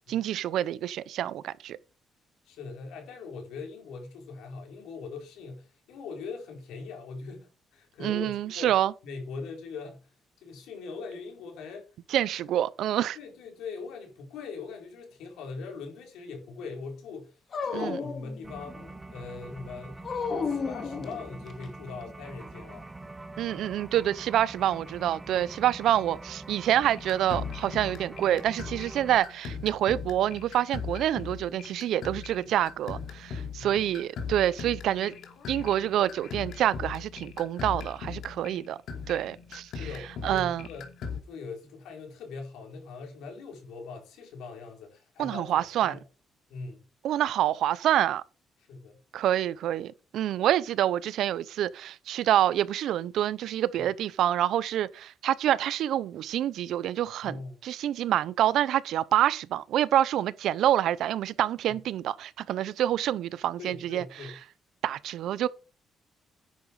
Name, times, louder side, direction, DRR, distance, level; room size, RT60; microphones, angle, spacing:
voice 1, 0.1-1.8 8.0-8.9 12.1-13.2 17.7-18.0 23.4-35.1 35.5-38.8 39.1-39.9 40.2-40.7 45.2-46.0 47.0-48.2 49.1-64.3 64.8-65.5, right 11 dB, 80° right, 0.6 m, -27 dB
voice 2, 2.4-8.7 9.0-11.8 13.1-18.8 19.1-20.0 20.4-22.9 33.6-33.8 38.0-38.2 39.7-40.9 41.3-45.5 45.8-46.0 46.5-46.8 48.7-49.0 57.2-57.6 61.7-61.8 63.6-64.4, left 4 dB, 90° left, 4.7 m, -41 dB
Dog, 17.5-18.9 20.0-21.7, left 5 dB, 50° left, 2.0 m, -33 dB
sound 1, 18.4-29.2, right 2 dB, 20° right, 1.2 m, -44 dB
sound 2, 26.9-41.2, left 6 dB, 75° left, 2.8 m, -39 dB
10.5 x 7.3 x 4.8 m
cardioid pair, 90°, 0 cm